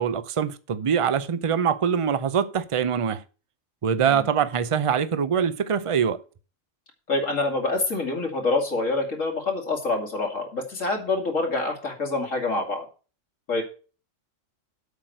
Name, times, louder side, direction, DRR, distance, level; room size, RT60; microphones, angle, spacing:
voice 1, 0.0-3.2 3.8-6.2, right 7 dB, 35° right, 0.5 m, -24 dB
voice 2, 7.1-12.8 13.5-13.6, left 3 dB, 80° left, 2.8 m, -26 dB
8.2 x 5.9 x 7.8 m
omnidirectional pair, 1.3 m